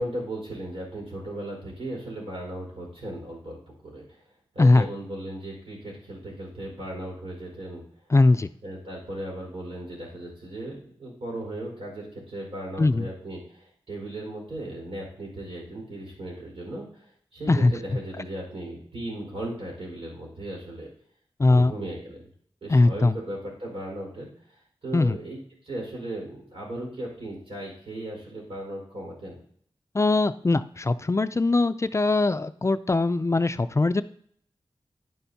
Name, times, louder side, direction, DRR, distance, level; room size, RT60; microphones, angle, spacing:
voice 1, 0.0-4.2 4.5-7.8 8.6-17.0 17.3-20.9 21.5-22.3 22.6-24.3 24.8-25.4 25.6-29.4, right 1 dB, 85° right, -2 dB, 4.7 m, -36 dB
voice 2, 8.1-8.5 12.8-13.1 17.5-17.7 21.4-21.7 22.7-23.2 24.9-25.2 29.9-34.0, left 2 dB, 30° left, 12 dB, 0.4 m, -21 dB
10.5 x 10.0 x 2.8 m, 0.62 s
wide cardioid pair, 90°, 9 cm